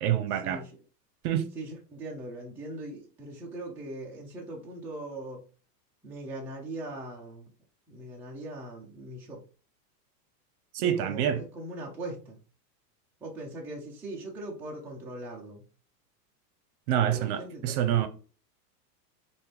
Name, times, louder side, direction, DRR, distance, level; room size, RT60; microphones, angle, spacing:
voice 1, 0.0-0.6 1.2-1.5 10.7-11.4 16.9-18.1, right 10 dB, 60° right, 0.9 m, -26 dB
voice 2, 1.5-5.4 6.0-7.5 7.9-9.4 10.8-12.4 13.2-15.6 17.0-17.8, right 1 dB, 5° right, 0.4 m, -40 dB
5.5 x 2.6 x 3.3 m
supercardioid pair, 140°, 49 cm